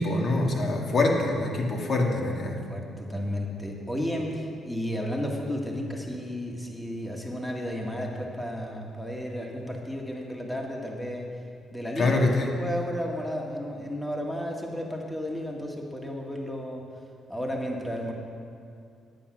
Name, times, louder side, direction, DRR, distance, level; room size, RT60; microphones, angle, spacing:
voice 1, 0.0-2.6 12.0-12.5, left 2 dB, 55° left, 0 dB, 1.9 m, -25 dB
voice 2, 2.7-11.3 11.7-12.2 12.6-16.8 17.3-18.1, equal, 10° left, 0 dB, 1.7 m, -33 dB
10.5 x 9.2 x 6.1 m, 2.4 s
cardioid pair, 90°, 0 cm